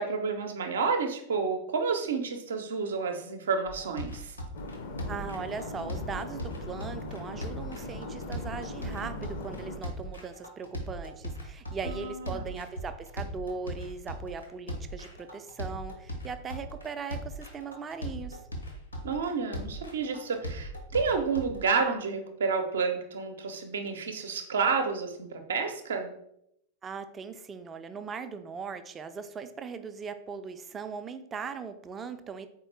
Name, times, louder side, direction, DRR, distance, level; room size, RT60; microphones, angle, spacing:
voice 1, 0.0-4.3 11.8-12.5 19.0-26.1, right 5 dB, 65° right, 6 dB, 0.6 m, -30 dB
sound 1, 3.6-21.7, equal, 80° left, 1.0 m, -39 dB
sound 2, 4.5-9.8, left 2 dB, 55° left, 0.6 m, -40 dB
voice 2, 5.1-18.4 26.8-32.5, right 5 dB, 20° right, 10 dB, 0.4 m, -39 dB
4.2 x 3.6 x 3.3 m, 0.75 s
figure-of-eight pair, 90°, 0 cm